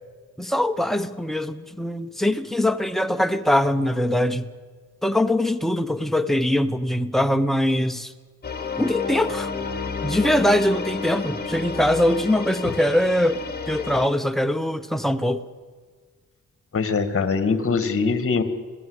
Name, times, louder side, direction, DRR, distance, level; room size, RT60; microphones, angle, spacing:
voice 1, 0.4-4.5 5.0-8.1 8.8-9.5 10.0-15.4, left 1 dB, ahead, 8 dB, 1.1 m, -22 dB
sound 1, 8.4-14.1, left 4 dB, 30° left, 3.4 m, -31 dB
voice 2, 16.7-18.4, left 4 dB, 45° left, 10 dB, 2.3 m, -22 dB
27.0 x 17.0 x 8.3 m, 1.5 s
cardioid pair, 100°, 30 cm